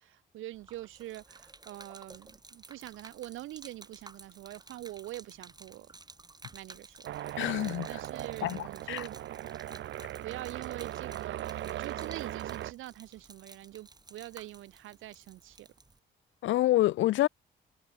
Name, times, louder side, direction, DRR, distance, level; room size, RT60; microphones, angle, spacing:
voice 1, 0.0-5.9 6.5-7.2 7.9-9.2 10.2-15.7, right 15 dB, 90° right, 6.4 m, -44 dB
Gurgling / Liquid, 0.5-16.0, right 3 dB, 20° right, 4.8 m, -53 dB
sound 1, 7.0-12.7, right 13 dB, 70° right, 0.9 m, -39 dB
voice 2, 7.4-7.9 8.4-9.0 16.4-17.3, left 15 dB, 75° left, 0.6 m, -27 dB
cardioid pair, 90°, 20 cm